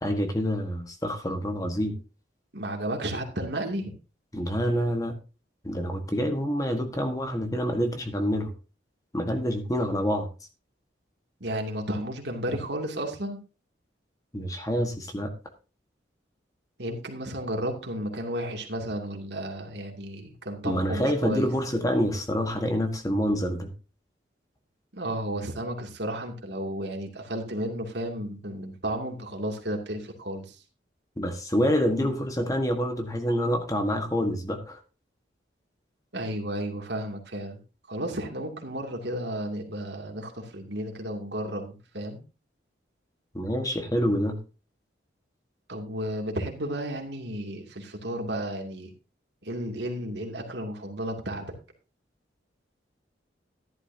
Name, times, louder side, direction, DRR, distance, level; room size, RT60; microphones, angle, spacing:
voice 1, 0.0-2.0 4.3-5.1 5.6-8.5 9.1-10.3 14.3-15.3 20.6-23.7 31.2-34.8 43.3-44.4, equal, 20° left, 5 dB, 1.5 m, -27 dB
voice 2, 2.5-3.9 11.4-13.4 16.8-21.5 24.9-30.6 36.1-37.6 37.9-42.2 45.7-48.9 49.4-51.5, right 1 dB, 70° right, 2 dB, 2.6 m, -33 dB
14.0 x 11.0 x 2.8 m, 0.33 s
head